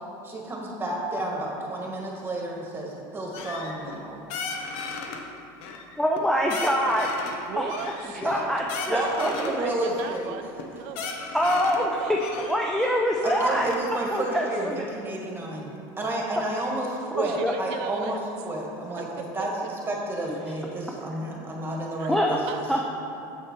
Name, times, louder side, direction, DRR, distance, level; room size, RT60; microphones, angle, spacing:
voice 1, 0.2-4.2 8.2-8.4 8.9-10.3 13.2-15.7 16.0-19.5 19.9-22.6, right 1 dB, 20° right, -1 dB, 1.7 m, -31 dB
sound 1, 3.3-4.0 4.3-5.2 5.6-6.2 6.5-7.4 7.7-9.6 10.0-10.2 10.6-10.7 10.9-11.9 12.2-13.8, left 4 dB, 65° left, 1.0 m, -36 dB
voice 2, 6.0-7.1 7.6-7.7 8.2-9.7 11.3-13.7 14.1-14.8 17.2-17.5 22.1-22.4 22.7-22.8, equal, 5° left, -1 dB, 0.6 m, -25 dB
voice 3, 7.5-8.2 9.2-10.5 10.8-11.1 11.8-12.2 17.1-18.2 19.2-19.3 22.0-22.1 22.5-22.8, right 9 dB, 70° right, 8 dB, 0.6 m, -37 dB
7.6 x 6.6 x 4.5 m, 2.7 s
supercardioid pair, 110°, 12 cm